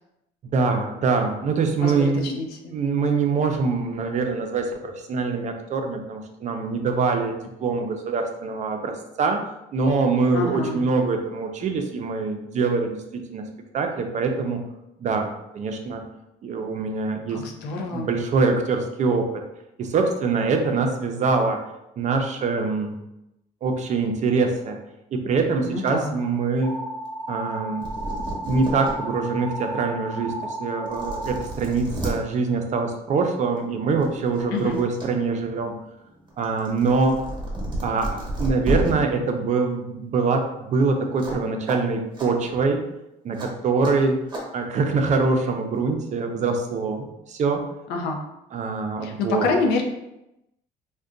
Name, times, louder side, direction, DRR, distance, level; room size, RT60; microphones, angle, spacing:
voice 1, 0.5-2.4 2.7-9.4 9.7-13.4 13.7-14.6 15.0-16.0 16.4-17.4 17.9-19.4 19.8-21.6 22.0-23.0 23.6-24.8 25.1-26.7 27.3-27.9 28.4-35.7 36.4-37.2 37.8-42.8 43.2-44.2 44.5-47.6 48.5-49.5, right 4 dB, 45° right, 4 dB, 0.5 m, -24 dB
voice 2, 1.8-2.7 10.3-10.8 17.3-18.1 25.6-26.2 34.5-34.8 47.9-48.2 49.0-49.8, left 3 dB, 85° left, 2 dB, 0.5 m, -27 dB
sound 1, 26.6-31.4, right 1 dB, 30° left, 1.0 m, -33 dB
sound 2, 27.6-27.7 27.8-28.9 29.5-29.6 30.4-30.5 30.9-32.1 33.4-33.6 34.0-35.1 35.4-38.9 41.2-41.4 41.7-41.8 42.1-42.3 43.4-43.5 43.8-43.9 44.3-44.4, right 1 dB, 25° right, 1.0 m, -31 dB
2.5 x 2.2 x 3.7 m, 0.89 s
cardioid pair, 110°, 17 cm